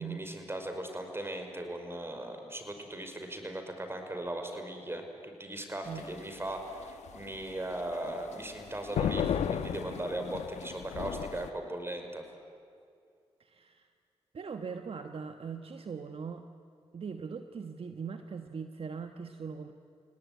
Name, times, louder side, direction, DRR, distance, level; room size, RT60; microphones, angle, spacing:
voice 1, 0.0-12.2, right 1 dB, 20° right, 5 dB, 5.5 m, -38 dB
sound 1, 5.9-11.5, left 8 dB, 80° left, 1.1 m, -35 dB
voice 2, 13.4-13.9 14.3-16.5 16.9-19.7, right 6 dB, 55° right, 7 dB, 1.3 m, -40 dB
30.0 x 18.0 x 9.7 m, 2.4 s
supercardioid pair, 50°, 12 cm